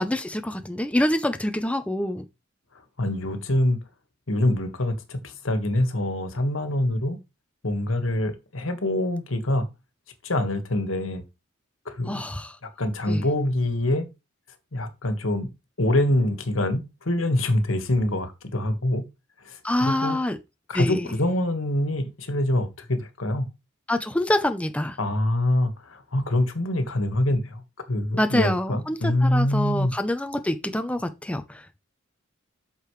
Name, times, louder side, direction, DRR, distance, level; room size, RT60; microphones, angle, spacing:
voice 1, 0.0-2.2 12.1-12.5 13.1-13.2 19.6-20.4 20.7-21.1 23.9-25.0 28.2-31.8, left 1 dB, 5° left, 0.6 m, -26 dB
voice 2, 3.0-3.8 4.3-7.2 7.6-9.7 10.2-11.2 11.8-12.2 12.8-14.0 14.7-15.5 15.8-19.0 19.4-20.2 20.7-23.5 25.0-27.6 27.9-29.9, left 1 dB, 75° left, 1.6 m, -25 dB
8.2 x 6.7 x 3.2 m
head